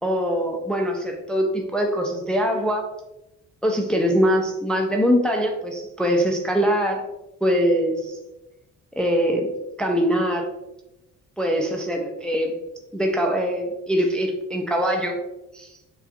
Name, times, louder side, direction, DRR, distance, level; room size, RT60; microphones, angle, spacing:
voice 1, 0.0-2.9 3.6-7.0 7.4-8.2 8.9-9.5 9.8-10.5 11.4-12.6 12.9-15.2 15.5-15.7, equal, 5° left, 2 dB, 0.4 m, -22 dB
4.2 x 2.4 x 2.5 m, 0.94 s
cardioid pair, 90°, 30 cm